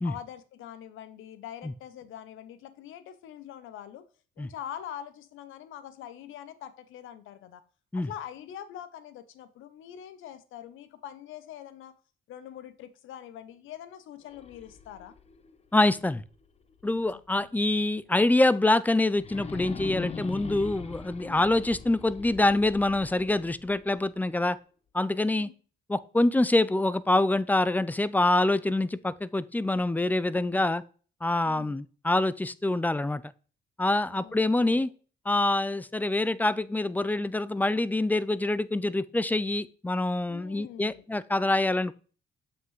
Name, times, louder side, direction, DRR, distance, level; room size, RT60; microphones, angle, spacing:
voice 1, 0.0-4.0 4.4-7.6 7.9-11.9 12.3-15.1 16.8-17.0 17.3-17.5 21.2-21.5 25.2-25.5 30.4-30.7 31.4-31.8 34.1-34.4 34.7-34.9 40.3-41.0, left 10 dB, 80° left, 0.6 m, -44 dB
sound 1, 14.2-17.2 17.6-17.7 19.1-24.2, left 5 dB, 30° left, 0.7 m, -42 dB
voice 2, 15.7-16.2 16.8-24.6 24.9-25.5 25.9-30.8 31.2-33.2 33.8-34.9 35.3-41.9, left 2 dB, 10° left, 0.3 m, -25 dB
7.4 x 5.7 x 3.1 m
cardioid pair, 90°, 20 cm